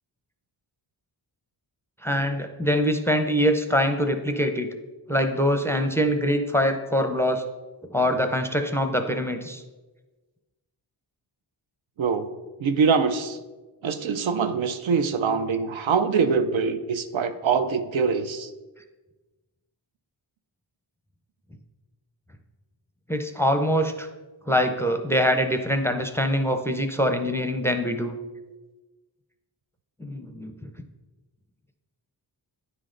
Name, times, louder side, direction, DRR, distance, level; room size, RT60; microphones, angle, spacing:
voice 1, 2.0-4.7 5.1-7.4 7.9-9.6 23.1-24.1 24.5-28.1 30.0-30.5, equal, 5° left, 6 dB, 0.5 m, -24 dB
voice 2, 12.6-13.4 13.8-18.5, right 5 dB, 75° right, 9 dB, 0.6 m, -24 dB
9.6 x 3.2 x 3.7 m, 1.2 s
cardioid pair, 60°, 47 cm